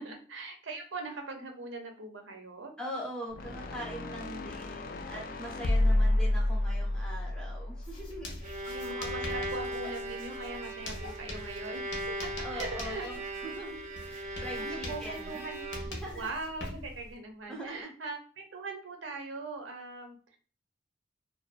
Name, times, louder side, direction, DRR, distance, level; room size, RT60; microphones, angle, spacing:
voice 1, 0.0-2.7 5.9-6.4 8.6-12.1 12.5-13.1 14.6-15.6 16.1-20.4, right 3 dB, 90° right, 3 dB, 0.6 m, -41 dB
voice 2, 2.8-8.3 12.4-15.4 16.0-16.3 17.5-17.9, equal, 5° left, -2 dB, 0.6 m, -42 dB
sound 1, 3.3-8.6, left 1 dB, 50° left, 0.3 m, -30 dB
Writing, 7.8-17.1, left 1 dB, 65° left, 0.7 m, -43 dB
Bowed string instrument, 8.1-16.2, right 1 dB, 40° right, 0.5 m, -39 dB
2.5 x 2.3 x 2.4 m, 0.39 s
head